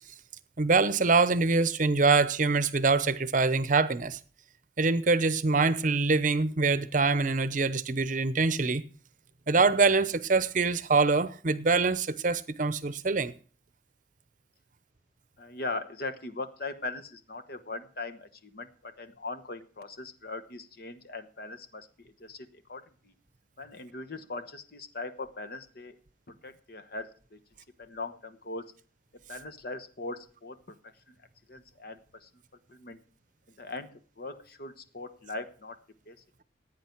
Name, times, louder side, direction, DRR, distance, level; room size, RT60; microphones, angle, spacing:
voice 1, 0.6-4.2 4.8-8.8 9.5-13.3, right 4 dB, 45° right, 0.8 m, -24 dB
voice 2, 15.4-23.1 23.6-26.0 26.4-27.4 27.8-28.6 29.3-30.6 31.1-31.2 31.5-32.3 32.7-33.0 33.6-35.8 36.1-36.2, left 3 dB, 55° left, 1.0 m, -40 dB
16.0 x 9.3 x 4.5 m
head